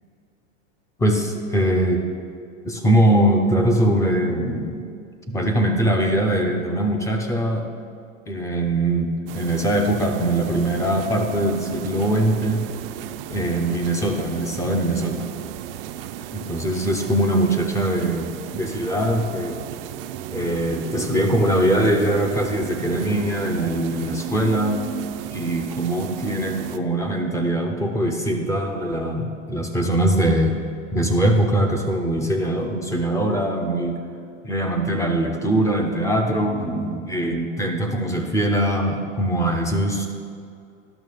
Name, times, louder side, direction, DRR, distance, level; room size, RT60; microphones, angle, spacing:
voice 1, 1.0-2.0 2.6-4.8 5.3-7.7 8.3-12.6 13.3-15.3 16.3-19.6 20.3-24.9 25.3-30.5 30.9-34.0 34.4-40.1, right 1 dB, 10° left, 3 dB, 0.5 m, -22 dB
sound 1, 9.3-26.8, right 11 dB, 50° right, 0.5 m, -34 dB
11.0 x 6.1 x 5.5 m, 2.3 s
hypercardioid pair, 135°, 38 cm